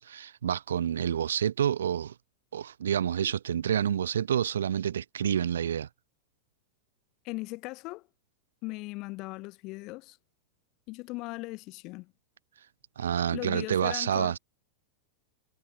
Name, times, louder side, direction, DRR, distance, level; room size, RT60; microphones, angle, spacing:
voice 1, 0.0-2.1 2.5-5.9 13.0-14.4, right 9 dB, 65° right, 0.5 m, -28 dB
voice 2, 7.2-8.1 8.6-10.2 10.9-12.1 13.3-14.4, left 23 dB, 40° left, 0.6 m, -38 dB
figure-of-eight pair, 90°, 0 cm